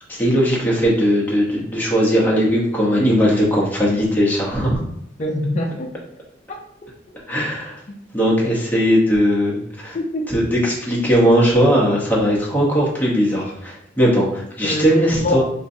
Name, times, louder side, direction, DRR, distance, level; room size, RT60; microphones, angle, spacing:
voice 1, 0.1-4.8 7.3-7.8 8.1-10.0 10.3-15.4, equal, 10° left, -4 dB, 0.9 m, -18 dB
voice 2, 5.2-5.9 6.8-6.9 9.9-10.3 13.3-13.4 14.6-15.4, left 1 dB, 40° left, 0 dB, 0.5 m, -24 dB
4.4 x 2.6 x 2.6 m, 0.72 s
head